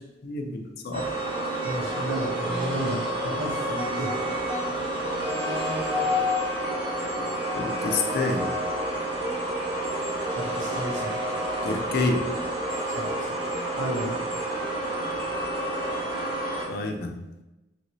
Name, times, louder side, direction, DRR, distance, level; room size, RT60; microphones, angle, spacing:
voice 1, 0.2-1.0 7.5-8.5 11.6-12.2 16.7-17.2, left 3 dB, 55° left, 4 dB, 0.4 m, -28 dB
sound 1, 0.9-16.7, right 1 dB, 30° right, 0.7 m, -29 dB
voice 2, 1.6-4.1 10.4-11.2 12.9-13.4 13.8-14.2, right 1 dB, 85° right, -3 dB, 1.0 m, -32 dB
3.0 x 2.6 x 3.0 m, 0.98 s
head